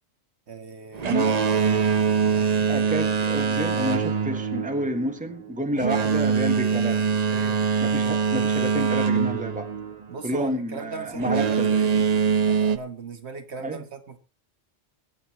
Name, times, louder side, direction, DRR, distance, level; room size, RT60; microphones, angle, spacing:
voice 1, 0.5-1.3 7.3-7.7 10.1-12.1 12.5-14.2, right 4 dB, 70° right, 7 dB, 1.6 m, -39 dB
Boat Water vehicle, 0.9-10.4 11.2-12.8, right 6 dB, 40° right, 0.8 m, -23 dB
voice 2, 1.0-1.4 2.7-7.1 7.8-9.7 10.2-11.9 13.6-13.8, equal, 5° right, 5 dB, 1.4 m, -30 dB
21.0 x 9.4 x 3.0 m, 0.30 s
omnidirectional pair, 1.2 m